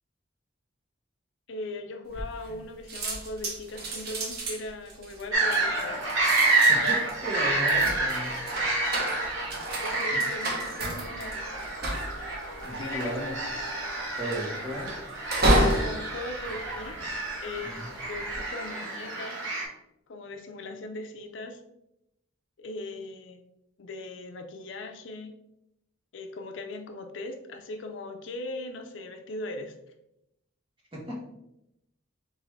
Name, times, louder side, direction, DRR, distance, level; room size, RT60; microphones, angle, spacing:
voice 1, 1.5-6.0 9.8-11.4 12.7-13.5 15.7-17.0 17.4-19.4 20.1-21.6 22.6-23.4 23.8-25.4 26.1-29.8, left 2 dB, 70° left, 6 dB, 0.5 m, -39 dB
sound 1, 2.1-2.6 2.9-17.4 18.0-18.4, right 1 dB, 50° right, 0.8 m, -31 dB
sound 2, 5.3-19.6, right 2 dB, 80° right, 1.1 m, -29 dB
sound 3, 5.4-7.0 7.3-10.4 10.8-14.9, left 1 dB, 25° left, 0.6 m, -46 dB
voice 2, 6.7-8.3 10.1-10.2 12.6-13.2 14.2-14.9 17.6-17.9 30.9-31.2, right 1 dB, 25° right, -4 dB, 1.1 m, -35 dB
3.9 x 3.6 x 3.1 m, 0.83 s
head